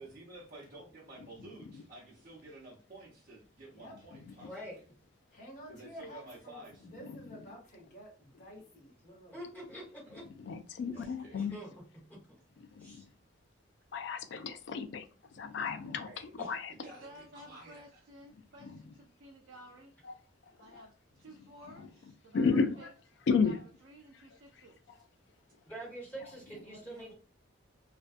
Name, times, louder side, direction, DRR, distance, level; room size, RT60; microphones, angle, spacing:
voice 1, 0.0-4.8 5.7-6.9 10.8-11.4 15.9-16.5 16.8-18.0, right 2 dB, 45° right, 0.8 m, -52 dB
voice 2, 4.4-4.8 9.3-10.2 10.9-11.0 11.3-11.7 12.8-13.0 25.6-27.1, right 1 dB, 10° left, 1.1 m, -45 dB
voice 3, 5.3-9.4 26.6-27.1, equal, 40° left, 1.0 m, -51 dB
voice 4, 10.3-11.6 12.8-13.0 13.9-15.1 15.3-16.7 18.6-18.8 20.0-20.1 20.7-20.8 21.8-21.9 22.3-22.9 23.3-23.6, left 5 dB, 60° left, 0.3 m, -33 dB
voice 5, 11.4-11.8 16.8-20.0 20.6-22.9 23.4-23.6 23.8-25.0, equal, 75° right, 0.4 m, -54 dB
2.5 x 2.2 x 2.4 m
head